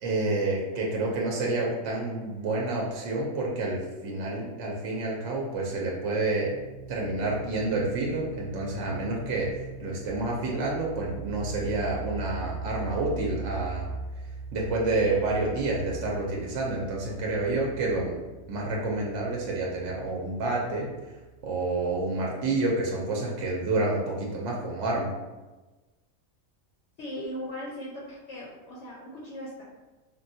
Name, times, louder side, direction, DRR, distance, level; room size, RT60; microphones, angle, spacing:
voice 1, 0.0-6.5 6.9-13.9 14.5-18.1 18.5-21.2 21.4-25.1, right 2 dB, 65° right, -3 dB, 0.8 m, -29 dB
sound 1, 6.4-21.8, right 5 dB, 30° right, 0.9 m, -41 dB
voice 2, 27.0-29.6, equal, 65° left, -4 dB, 0.8 m, -38 dB
3.5 x 2.2 x 2.6 m, 1.2 s
omnidirectional pair, 1.4 m